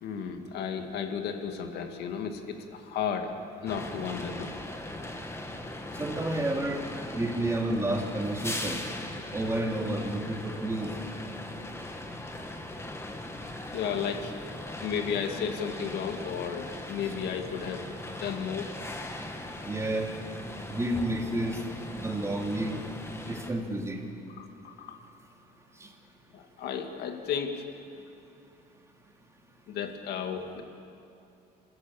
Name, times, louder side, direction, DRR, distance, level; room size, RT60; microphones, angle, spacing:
voice 1, 0.0-3.3 3.6-4.5 13.7-14.3 14.8-17.8 18.2-18.7 24.4-25.0 26.3-27.6 29.7-30.6, left 7 dB, 75° left, 5 dB, 2.0 m, -33 dB
sound 1, 3.7-23.5, left 1 dB, 15° left, 2.2 m, -39 dB
voice 2, 5.9-6.8 7.1-8.8 9.3-10.9 19.6-20.1 20.7-21.6 21.9-22.8 23.3-24.0 25.8-25.9, right 1 dB, 15° right, 2 dB, 2.8 m, -30 dB
28.5 x 16.0 x 7.2 m, 2.6 s
cardioid pair, 110°, 17 cm